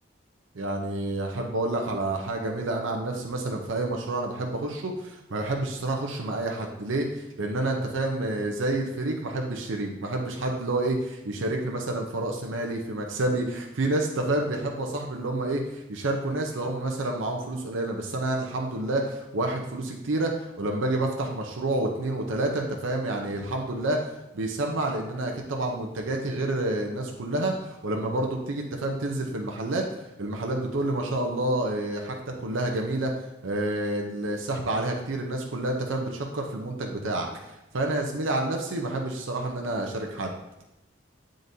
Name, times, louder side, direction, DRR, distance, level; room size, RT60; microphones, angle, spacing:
voice 1, 0.5-24.0 24.3-29.9 30.2-33.1 33.4-40.3, right 2 dB, 90° right, 1 dB, 0.7 m, -29 dB
9.2 x 3.8 x 2.7 m, 0.93 s
head